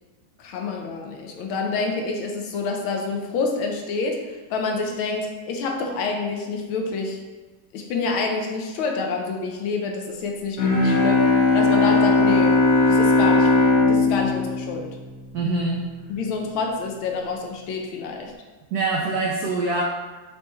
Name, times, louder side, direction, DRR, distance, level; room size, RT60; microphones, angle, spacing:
voice 1, 0.4-7.2 7.7-11.2 11.5-12.5 12.9-13.5 13.9-15.0 16.1-18.3, left 4 dB, 80° left, 2 dB, 1.4 m, -27 dB
Bowed string instrument, 10.6-15.7, left 3 dB, 55° left, 1.0 m, -19 dB
voice 2, 15.3-15.8 18.7-19.8, right 3 dB, 85° right, -2 dB, 0.8 m, -24 dB
4.6 x 3.2 x 3.0 m, 1.2 s
omnidirectional pair, 2.3 m